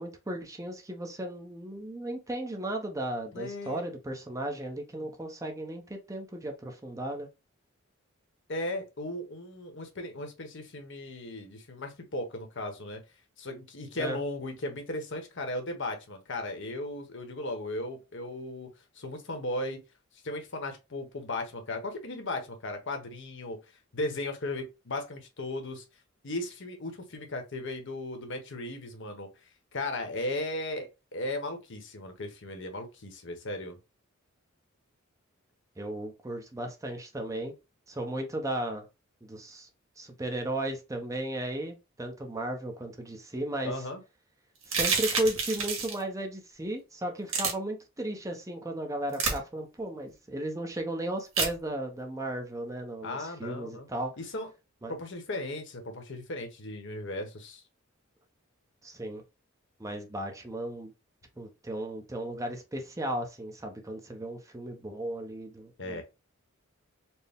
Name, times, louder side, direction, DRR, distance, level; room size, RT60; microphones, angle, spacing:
voice 1, 0.0-7.3 14.0-14.2 35.8-37.5 37.9-38.9 39.2-39.7 40.0-43.8 44.7-54.1 54.8-54.9 58.8-59.2 59.8-60.9 61.4-66.0, right 1 dB, 15° right, 0.7 m, -35 dB
voice 2, 3.3-3.9 8.5-13.0 13.4-18.7 18.9-19.8 20.2-23.6 23.9-25.8 26.2-29.3 29.7-33.8 43.6-44.0 53.0-53.9 54.2-54.5 54.9-57.6 65.8-66.0, left 1 dB, 60° left, 1.0 m, -36 dB
sound 1, 44.6-46.0 47.3-47.5 49.1-49.4 51.4-51.5, right 5 dB, 65° right, 1.4 m, -28 dB
4.3 x 2.1 x 3.5 m
head